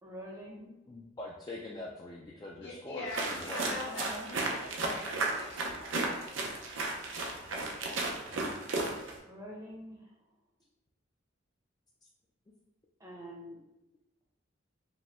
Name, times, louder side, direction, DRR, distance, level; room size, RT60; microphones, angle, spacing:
voice 1, 0.0-0.7 3.5-4.3 9.2-10.1 13.0-13.6, equal, 15° right, -1 dB, 0.7 m, -46 dB
voice 2, 0.9-3.7 7.2-7.3 8.2-8.4, left 2 dB, 20° left, -3 dB, 0.4 m, -43 dB
voice 3, 2.6-6.4, left 2 dB, 65° left, -3 dB, 1.3 m, -43 dB
sound 1, 3.1-9.2, right 2 dB, 90° right, 0.7 m, -34 dB
4.8 x 2.2 x 3.5 m, 0.93 s
head